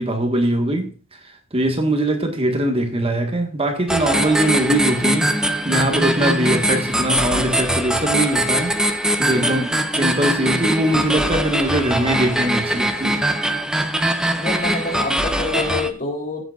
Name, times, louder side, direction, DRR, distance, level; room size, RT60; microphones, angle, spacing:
voice 1, 0.0-9.7 9.9-13.2, right 1 dB, 30° right, 1.6 m, -22 dB
sound 1, 3.9-15.9, right 1 dB, 5° right, 1.0 m, -21 dB
voice 2, 9.4-9.8 14.4-16.4, left 3 dB, 40° left, 3.2 m, -27 dB
15.0 x 8.9 x 2.5 m
head